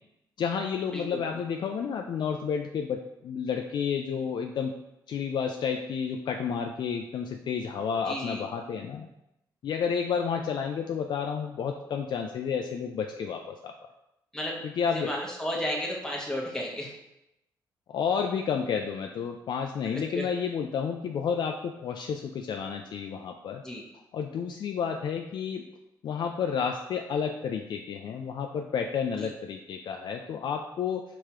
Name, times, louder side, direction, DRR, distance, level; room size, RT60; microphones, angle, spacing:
voice 1, 0.4-4.8 5.1-9.1 9.6-13.7 14.6-15.1 17.9-23.6 24.1-25.7 26.0-31.0, left 6 dB, 65° left, 3 dB, 0.3 m, -31 dB
voice 2, 0.9-1.2 8.1-8.4 14.3-14.6 14.9-16.9 20.1-20.3 23.6-23.8 29.2-29.3, equal, 10° left, -2 dB, 1.1 m, -33 dB
4.8 x 3.5 x 3.0 m, 0.88 s
cardioid pair, 80°, 8 cm